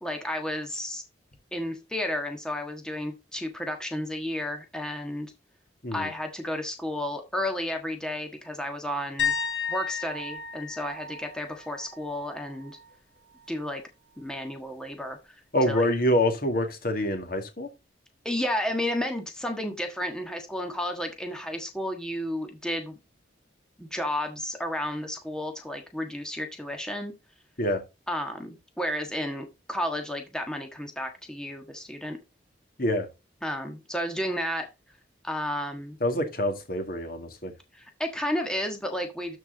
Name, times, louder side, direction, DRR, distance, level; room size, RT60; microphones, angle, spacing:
voice 1, 0.0-1.0 1.5-5.3 5.9-9.3 9.7-12.7 13.5-13.8 14.2-15.2 15.7-15.9 18.2-23.0 23.8-27.1 28.1-32.2 33.4-34.6 35.2-36.0 37.7-39.4, left 1 dB, 5° left, 1.5 m, -32 dB
sound 1, 9.2-12.9 13.3-13.6 16.5-16.6, left 6 dB, 80° left, 2.1 m, -34 dB
voice 2, 15.5-17.7 27.6-27.8 32.8-33.1 36.0-37.5, left 1 dB, 50° left, 2.1 m, -26 dB
12.5 x 4.6 x 3.9 m
head